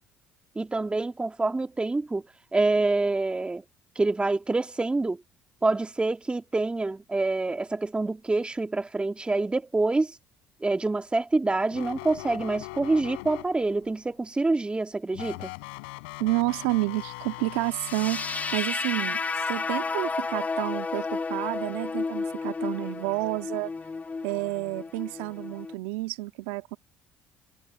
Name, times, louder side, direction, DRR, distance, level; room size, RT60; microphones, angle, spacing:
voice 1, 0.6-2.2 2.5-3.6 4.0-5.2 5.6-10.2 10.6-15.5, right 3 dB, 20° right, 2.4 m, -26 dB
sound 1, 11.7-13.9 15.1-18.6, left 27 dB, 85° left, 6.7 m, -40 dB
voice 2, 16.2-19.2 19.5-23.7 24.2-26.8, right 20 dB, 85° right, 1.7 m, -30 dB
sound 2, 17.7-25.7, left 4 dB, 25° left, 2.0 m, -32 dB
supercardioid pair, 70°, 6 cm